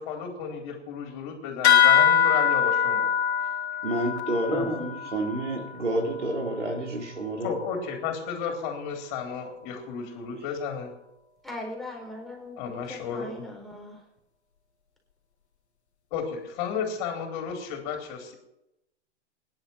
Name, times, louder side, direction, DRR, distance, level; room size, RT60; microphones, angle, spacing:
voice 1, 0.0-3.1 4.5-4.7 7.4-10.9 12.6-13.3 16.1-18.3, left 6 dB, 40° left, 2 dB, 3.6 m, -33 dB
sound 1, 1.6-6.6, left 8 dB, 65° left, 2.4 m, -23 dB
voice 2, 3.8-7.5, right 1 dB, 80° right, 1 dB, 4.6 m, -29 dB
voice 3, 11.4-14.0, left 1 dB, ahead, -1 dB, 4.5 m, -39 dB
23.5 x 11.0 x 4.6 m, 0.86 s
figure-of-eight pair, 115°, 35 cm